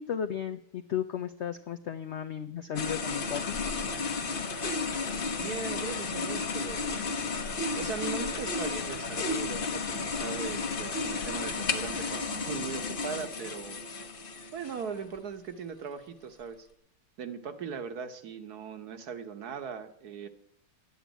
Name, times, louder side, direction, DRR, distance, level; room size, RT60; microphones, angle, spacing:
voice 1, 0.0-3.6, left 9 dB, 75° left, 8 dB, 0.6 m, -34 dB
sound 1, 2.8-15.1, left 4 dB, 40° left, 0.9 m, -33 dB
voice 2, 5.4-7.2 7.7-13.8 14.5-16.7 17.2-20.3, right 6 dB, 60° right, 9 dB, 1.6 m, -39 dB
11.0 x 8.3 x 9.0 m, 0.68 s
omnidirectional pair, 2.0 m